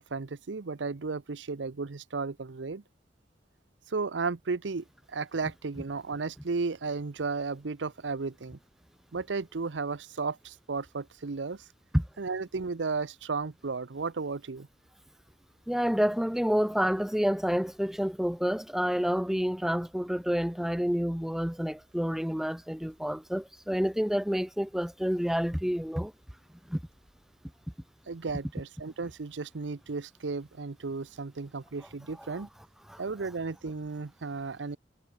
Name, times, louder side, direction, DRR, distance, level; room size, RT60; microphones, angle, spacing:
voice 1, 0.0-2.8 3.9-8.6 9.1-11.7 12.2-14.7 28.1-32.5 33.0-34.8, right 4 dB, 85° right, 0.7 m, -34 dB
voice 2, 15.7-26.1 26.7-26.8 32.9-33.0, equal, ahead, 0.5 m, -28 dB
head